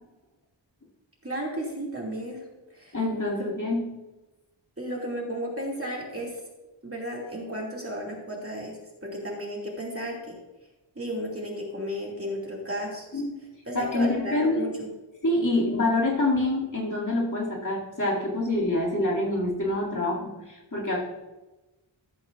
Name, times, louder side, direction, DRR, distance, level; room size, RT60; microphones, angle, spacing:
voice 1, 1.2-2.4 2.7-3.0 4.8-6.3 6.8-8.8 9.0-10.3 11.0-13.2 13.7-14.9, equal, 30° right, -2 dB, 2.5 m, -33 dB
voice 2, 2.9-3.9 13.1-13.4 13.7-14.6 15.2-21.0, left 2 dB, 40° left, -5 dB, 2.6 m, -26 dB
14.5 x 7.7 x 2.5 m, 1.1 s
wide cardioid pair, 75°, 46 cm